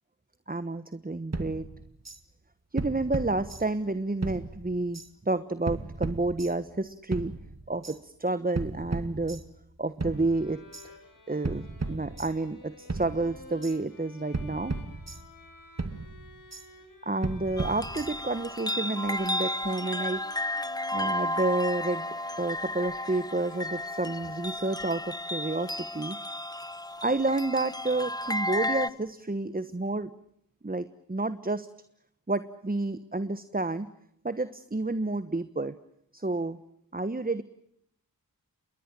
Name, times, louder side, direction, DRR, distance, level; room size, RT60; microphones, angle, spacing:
voice 1, 0.5-1.7 2.7-5.0 5.2-7.3 7.7-9.4 9.8-10.9 11.3-14.7 17.0-20.2 20.9-22.1 22.4-26.2 27.0-30.1 30.6-31.7 32.3-33.9 34.2-35.7 36.1-36.6 36.9-37.4, right 2 dB, 25° right, 12 dB, 1.2 m, -30 dB
sound 1, 1.3-2.2 2.8-3.9 4.2-5.1 5.7-6.8 7.1-8.0 8.6-9.7 10.0-10.9 11.4-12.6 12.9-13.8 14.3-15.5 15.8-16.7 17.2-18.4, right 3 dB, 45° right, 2.4 m, -36 dB
Bowed string instrument, 10.1-24.7, left 3 dB, 65° left, 7.3 m, -52 dB
sound 2, 17.6-28.9, left 1 dB, 10° left, 1.1 m, -33 dB
28.5 x 22.0 x 7.5 m, 0.74 s
wide cardioid pair, 45°, 35 cm